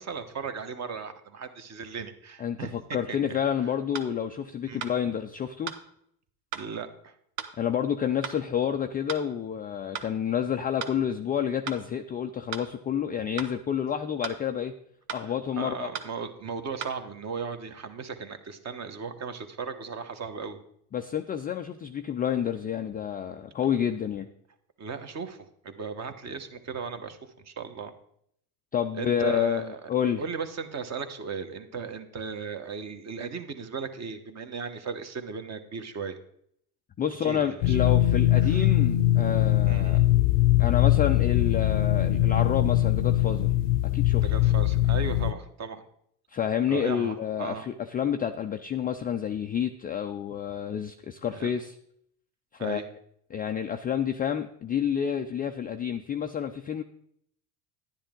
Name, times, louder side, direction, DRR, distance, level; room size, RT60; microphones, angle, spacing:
voice 1, 0.0-3.4 4.6-4.9 6.5-7.1 13.2-13.3 15.1-20.6 24.8-27.9 29.0-29.8 30.2-36.2 37.2-37.9 38.4-38.7 39.7-40.1 44.2-45.8 46.7-47.7 51.3-51.5 52.6-52.9, right 5 dB, 35° right, 8 dB, 1.2 m, -37 dB
voice 2, 2.4-5.7 7.6-14.7 15.1-15.9 20.9-24.3 28.7-30.2 37.0-40.0 40.6-43.5 43.9-44.3 46.3-51.7 52.5-52.8 53.3-56.8, left 9 dB, 20° left, 6 dB, 0.3 m, -29 dB
sound 1, 3.9-4.1 4.8-5.0 5.7-5.8 6.5-6.7 7.4-7.5 8.2-8.4 9.1-9.3 9.9-10.1 10.8-11.0 11.7-11.8 12.5-12.7 13.4-13.5 14.2-14.4 15.1-15.3 15.9-16.1 16.8-17.0, right 8 dB, 80° right, 1.2 m, -36 dB
sound 2, 37.6-45.3, left 14 dB, 80° left, 0.8 m, -22 dB
10.5 x 10.0 x 3.7 m, 0.69 s
supercardioid pair, 100°, 49 cm